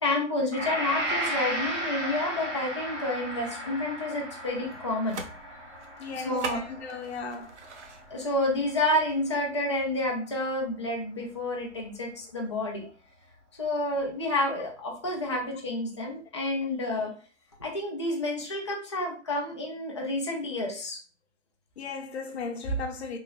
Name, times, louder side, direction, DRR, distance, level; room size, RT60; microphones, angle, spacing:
voice 1, 0.0-5.2 6.1-6.6 8.1-12.9 13.6-17.1 17.6-21.0, left 1 dB, 25° left, 0.3 m, -29 dB
Gong, 0.5-8.9 9.3-9.5, equal, 85° right, 1.3 m, -35 dB
sound 1, 4.5-9.4, right 4 dB, 65° right, 0.6 m, -43 dB
voice 2, 6.0-7.5 12.8-12.9 16.6-16.8 21.8-23.2, left 2 dB, 60° left, 0.7 m, -35 dB
3.1 x 2.8 x 2.3 m
hypercardioid pair, 150°, 37 cm